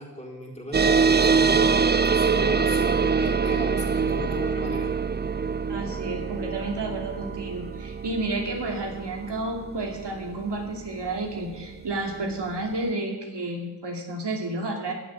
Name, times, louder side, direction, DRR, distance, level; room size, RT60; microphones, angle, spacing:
voice 1, 0.0-4.9, left 1 dB, 15° left, -2 dB, 4.1 m, -36 dB
sound 1, 0.7-11.7, right 5 dB, 25° right, 0.4 m, -24 dB
voice 2, 5.7-14.9, right 2 dB, 75° right, 1 dB, 2.7 m, -31 dB
14.5 x 7.7 x 9.7 m, 1.2 s
wide cardioid pair, 80°, 42 cm